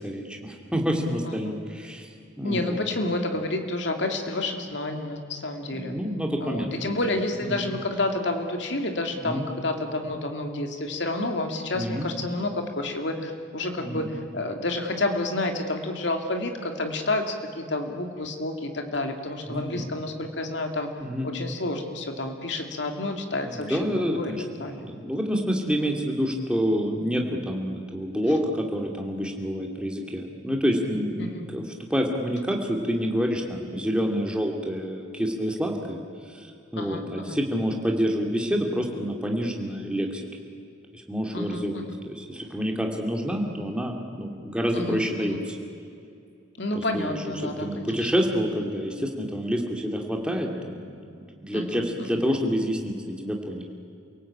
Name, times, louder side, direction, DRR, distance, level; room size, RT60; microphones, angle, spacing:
voice 1, 0.0-2.1 2.4-2.8 5.7-6.7 7.4-7.6 9.2-9.5 11.7-12.1 13.8-14.2 19.5-19.8 21.0-21.3 23.4-24.4 24.8-31.6 31.9-36.0 36.3-40.3 40.9-45.5 46.7-47.3 47.6-53.7, equal, 5° right, 1 dB, 2.8 m, -28 dB
voice 2, 1.2-1.5 2.4-5.9 6.4-20.9 21.2-24.3 24.6-24.9 25.8-25.9 30.9-31.5 36.8-37.4 41.3-41.9 44.7-45.4 46.6-48.1 51.5-52.2, left 2 dB, 60° left, 4 dB, 2.5 m, -30 dB
29.0 x 18.0 x 8.9 m, 2.5 s
head